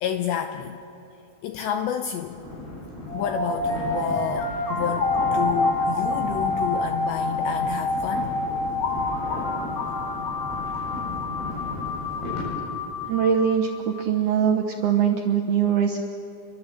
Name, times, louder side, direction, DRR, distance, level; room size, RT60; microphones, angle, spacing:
voice 1, 0.0-0.8 1.4-2.4 3.1-8.4, left 9 dB, 90° left, 6 dB, 2.5 m, -29 dB
sound 1, 2.2-12.5, left 1 dB, 50° left, 9.7 m, -36 dB
sound 2, 3.1-14.0, left 2 dB, 65° left, 1.5 m, -27 dB
voice 2, 13.1-16.1, right 7 dB, 75° right, 1 dB, 2.3 m, -22 dB
28.0 x 23.5 x 7.7 m, 2.7 s
omnidirectional pair, 6.0 m